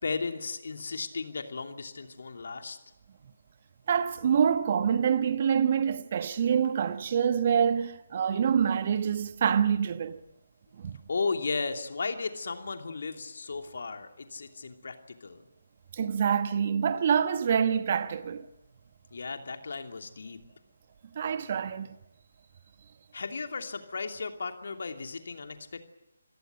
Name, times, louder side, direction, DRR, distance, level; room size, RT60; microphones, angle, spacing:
voice 1, 0.0-2.8 11.1-15.4 19.1-20.4 23.1-25.9, left 4 dB, 60° left, 2.9 m, -35 dB
voice 2, 3.9-10.2 10.8-11.0 15.9-18.5 21.1-21.9, right 7 dB, 40° right, 1.2 m, -26 dB
26.5 x 17.0 x 9.3 m
figure-of-eight pair, 150°, 0 cm